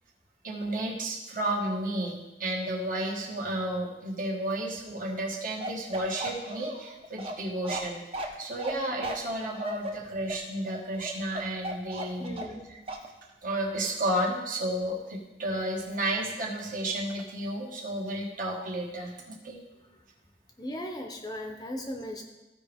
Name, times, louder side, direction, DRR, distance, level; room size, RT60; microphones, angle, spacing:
voice 1, 0.4-8.0 8.4-12.4 13.4-19.6, right 1 dB, 50° right, -1 dB, 1.5 m, -32 dB
Bark, 5.6-12.6 12.9-13.1, right 1 dB, 30° right, 0.8 m, -36 dB
voice 2, 12.2-12.7 20.6-22.2, equal, 20° left, 3 dB, 0.7 m, -37 dB
14.5 x 5.0 x 3.5 m, 1.0 s
head